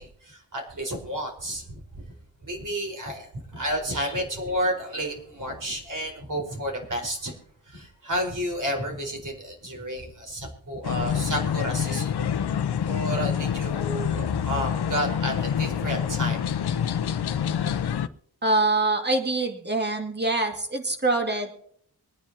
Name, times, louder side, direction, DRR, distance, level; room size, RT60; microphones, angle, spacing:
voice 1, 0.0-2.1 2.4-7.3 7.6-12.2 12.8-16.4, equal, 50° right, 0 dB, 4.7 m, -31 dB
sound 1, 10.8-18.1, left 8 dB, 75° left, 0.8 m, -27 dB
voice 2, 18.4-21.5, right 2 dB, 25° right, 3 dB, 2.2 m, -24 dB
23.5 x 9.8 x 2.9 m, 0.65 s
wide cardioid pair, 125°, 39 cm